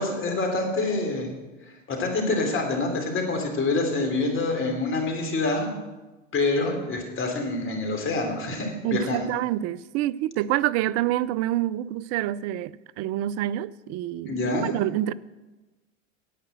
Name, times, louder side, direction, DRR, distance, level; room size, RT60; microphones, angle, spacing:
voice 1, 0.0-1.3 1.9-5.7 6.3-9.3 14.3-14.7, left 3 dB, 30° left, 3.2 m, -26 dB
voice 2, 8.8-15.1, right 14 dB, 40° right, 0.5 m, -27 dB
10.0 x 8.9 x 7.5 m
hypercardioid pair, 90°, 38 cm